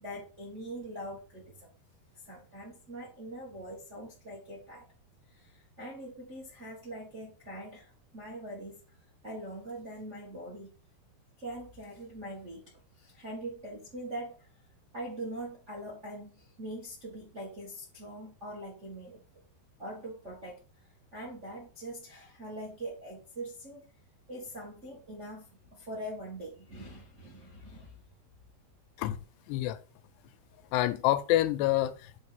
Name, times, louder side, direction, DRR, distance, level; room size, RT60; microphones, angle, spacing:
voice 1, 0.0-1.7 2.2-4.8 5.3-8.8 9.2-10.7 11.4-12.7 13.0-14.5 14.9-19.2 19.8-20.6 21.1-23.8 24.3-28.0, right 1 dB, 60° right, 0.7 m, -42 dB
voice 2, 29.5-29.8 30.7-32.2, left 14 dB, 90° left, 2.7 m, -27 dB
7.0 x 3.3 x 5.8 m
omnidirectional pair, 4.8 m